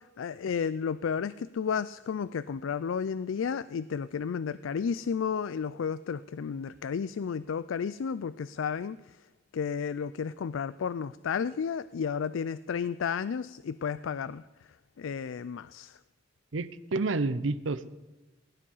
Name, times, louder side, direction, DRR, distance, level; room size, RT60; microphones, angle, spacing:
voice 1, 0.0-9.2 9.5-14.4 15.0-16.0, left 6 dB, 90° left, 16 dB, 0.4 m, -32 dB
voice 2, 16.5-17.9, right 3 dB, 85° right, 14 dB, 0.8 m, -29 dB
17.0 x 10.0 x 5.5 m, 1.1 s
head